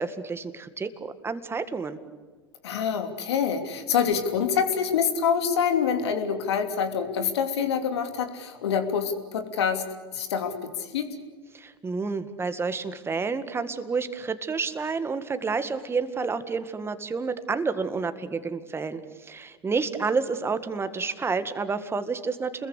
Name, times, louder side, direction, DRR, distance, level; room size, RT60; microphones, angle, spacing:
voice 1, 0.0-2.0 11.5-22.7, right 4 dB, 15° right, 11 dB, 1.9 m, -30 dB
voice 2, 2.6-9.8 10.1-11.1, left 7 dB, 70° left, 7 dB, 3.1 m, -26 dB
29.0 x 21.5 x 8.2 m, 1.4 s
hypercardioid pair, 90°, 14 cm